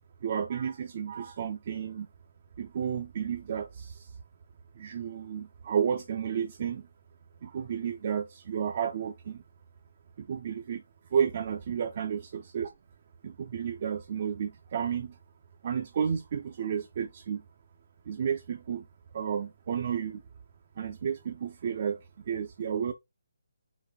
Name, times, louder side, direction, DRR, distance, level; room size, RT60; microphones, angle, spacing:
voice 1, 0.2-2.1 2.6-4.1 4.8-6.9 7.4-9.4 10.2-10.8 11.1-12.7 13.2-15.2 15.6-17.4 18.1-18.9 19.1-20.2 20.8-22.0 22.3-22.9, right 7 dB, 40° right, 0.4 m, -32 dB
3.9 x 2.5 x 3.5 m
figure-of-eight pair, 155°, 0 cm